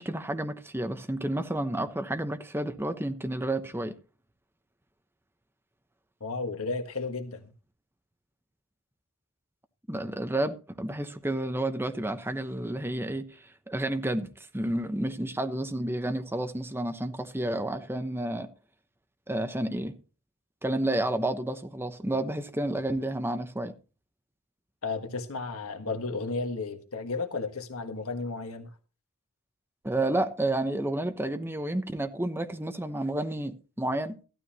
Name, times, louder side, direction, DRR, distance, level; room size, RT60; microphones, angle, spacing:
voice 1, 0.0-4.0 9.9-13.3 13.7-18.5 19.3-20.0 20.6-23.7 29.8-34.2, right 1 dB, 10° right, 0.9 m, -30 dB
voice 2, 6.2-7.4 24.8-28.7, left 3 dB, 70° left, 1.5 m, -33 dB
14.5 x 12.5 x 2.9 m
head